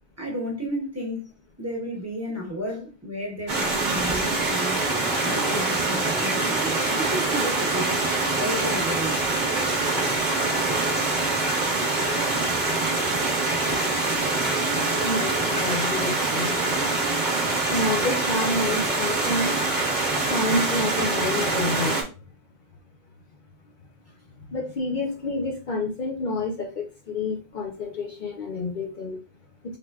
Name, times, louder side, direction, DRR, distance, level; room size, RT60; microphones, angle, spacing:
voice 1, 0.2-1.2 1.6-4.8 5.2-9.2, equal, 15° right, 1.1 m, -32 dB
Stream, 3.5-22.0, right 2 dB, 50° right, 1.0 m, -24 dB
voice 2, 15.0-16.5 17.7-19.5 20.3-22.0 24.5-29.2, left 2 dB, 55° left, 0.7 m, -28 dB
3.7 x 3.3 x 2.3 m
omnidirectional pair, 1.0 m